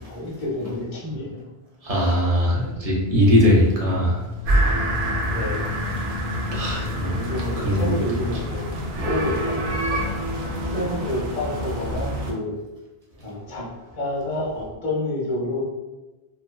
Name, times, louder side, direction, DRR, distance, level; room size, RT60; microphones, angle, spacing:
voice 1, 0.0-1.5 5.3-5.6 7.0-8.7 9.0-9.8 10.6-12.5 13.2-13.7 13.9-15.6, left 1 dB, 50° left, -5 dB, 0.8 m, -29 dB
voice 2, 1.8-5.2 6.5-7.1 7.6-7.9, equal, 45° right, -4 dB, 0.6 m, -21 dB
sound 1, 3.8-10.7, left 5 dB, 25° left, 1.1 m, -36 dB
sound 2, 4.4-12.3, right 1 dB, 80° right, 0.8 m, -26 dB
2.7 x 2.1 x 2.3 m, 1.1 s
omnidirectional pair, 1.1 m